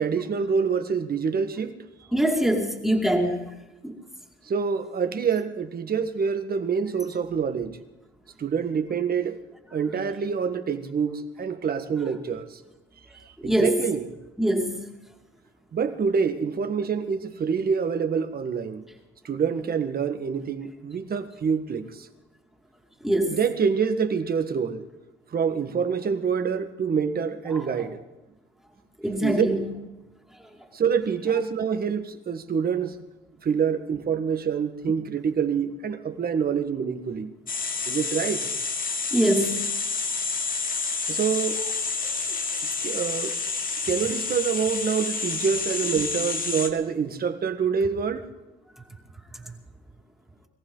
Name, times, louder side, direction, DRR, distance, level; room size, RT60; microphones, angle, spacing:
voice 1, 0.0-1.8 4.4-7.8 8.4-9.4 9.7-12.6 13.4-14.1 15.7-18.8 19.2-22.1 23.2-24.8 25.3-28.0 29.2-29.4 30.7-33.0 33.4-37.3 37.9-38.5 41.1-41.6 42.8-43.3 43.8-48.2, right 6 dB, 50° right, 8 dB, 1.6 m, -26 dB
voice 2, 2.1-3.4 3.8-3.9 13.4-13.8 14.4-14.8 23.0-23.4 27.5-27.8 29.0-29.7 39.1-39.7, right 1 dB, ahead, 1 dB, 2.6 m, -23 dB
sound 1, 37.5-46.7, left 4 dB, 45° left, 2.0 m, -29 dB
23.0 x 15.0 x 3.9 m, 1.1 s
cardioid pair, 90°, 20 cm